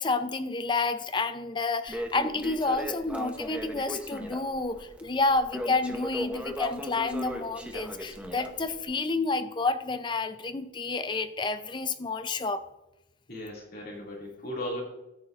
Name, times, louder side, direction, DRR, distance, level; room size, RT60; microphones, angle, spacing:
voice 1, 0.0-12.6, left 3 dB, 25° left, 10 dB, 0.5 m, -29 dB
Crackle, 1.9-8.8, equal, 5° right, 0.8 m, -37 dB
voice 2, 13.3-14.8, equal, 50° left, -3 dB, 2.5 m, -36 dB
13.5 x 8.4 x 2.5 m, 0.94 s
head